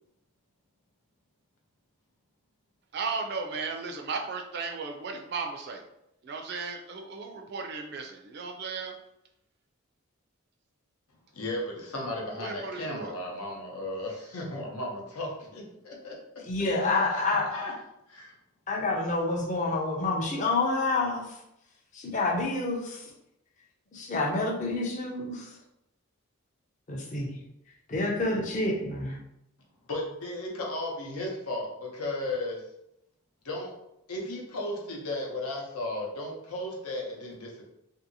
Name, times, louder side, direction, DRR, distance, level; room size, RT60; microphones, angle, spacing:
voice 1, 2.9-5.8 6.2-8.9 12.4-13.1, right 4 dB, 50° right, 4 dB, 0.3 m, -35 dB
voice 2, 11.3-16.2 16.7-17.7 18.1-18.3 29.9-32.6 33.4-33.7 34.1-37.6, left 1 dB, 90° left, -1 dB, 0.8 m, -35 dB
voice 3, 16.4-17.5 18.7-21.4 21.9-23.1 23.9-25.6 26.9-27.4 27.9-29.2, left 2 dB, 35° left, -1 dB, 0.5 m, -28 dB
2.8 x 2.7 x 2.7 m, 0.83 s
head